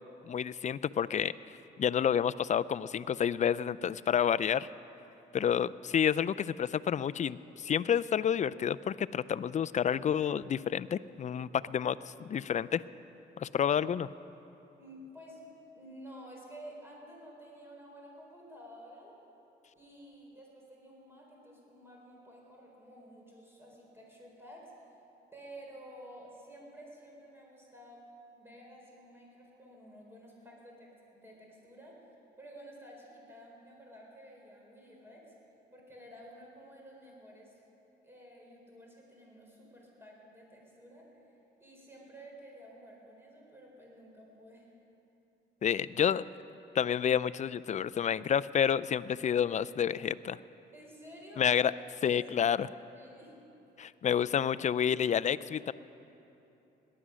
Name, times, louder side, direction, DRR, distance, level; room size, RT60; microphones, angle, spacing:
voice 1, 0.3-1.3 1.8-4.7 5.3-12.8 13.4-14.1 45.6-46.2 46.7-50.4 51.4-51.7 52.0-52.7 53.8-55.7, left 8 dB, 40° left, 16 dB, 0.4 m, -29 dB
voice 2, 14.8-15.5 15.7-19.2 19.7-24.9 25.3-28.1 28.3-32.0 32.4-35.3 35.7-37.6 38.0-41.1 41.6-44.7 50.7-51.7 51.9-53.4, equal, 10° right, -2 dB, 4.0 m, -52 dB
18.0 x 11.0 x 6.3 m, 2.9 s
cardioid pair, 90°, 20 cm